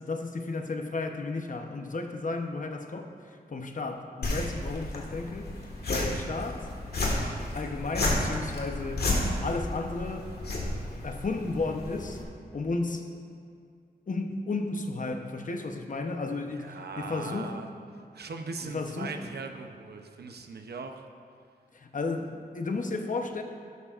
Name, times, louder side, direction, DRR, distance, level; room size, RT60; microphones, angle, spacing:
voice 1, 0.0-3.1 3.5-5.6 5.9-6.7 7.5-9.1 9.4-10.3 11.0-12.2 12.5-13.1 14.1-17.6 18.6-19.3 21.7-23.4, left 3 dB, 55° left, 5 dB, 0.9 m, -33 dB
sound 1, 4.2-12.2, left 1 dB, 85° left, 1.7 m, -32 dB
voice 2, 16.5-17.7 18.1-21.1, right 4 dB, 90° right, 5 dB, 0.7 m, -40 dB
12.5 x 12.0 x 2.5 m, 2.3 s
wide cardioid pair, 85°, 16 cm